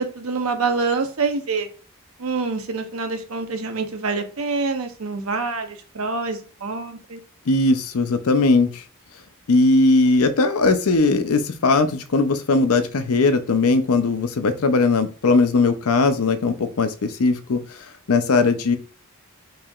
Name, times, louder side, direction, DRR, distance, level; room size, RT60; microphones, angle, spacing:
voice 1, 0.0-1.7 2.2-7.2, right 4 dB, 75° right, 6 dB, 0.8 m, -26 dB
voice 2, 7.5-8.8 9.5-17.6 18.1-18.8, left 3 dB, 85° left, 9 dB, 0.6 m, -19 dB
4.8 x 2.9 x 2.4 m, 0.38 s
head